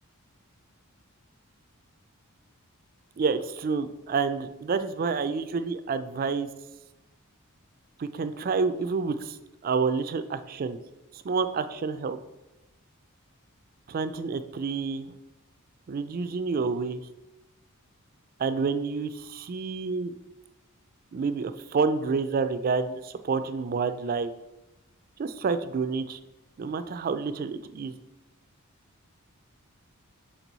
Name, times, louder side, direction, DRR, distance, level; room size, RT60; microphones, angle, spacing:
voice 1, 3.2-6.5 8.0-9.4 9.6-10.8 11.1-12.2 13.9-15.1 15.9-17.0 18.4-20.1 21.1-24.3 25.2-26.2 26.6-27.9, right 4 dB, 40° right, 11 dB, 0.3 m, -28 dB
6.0 x 4.5 x 4.0 m, 1.0 s
head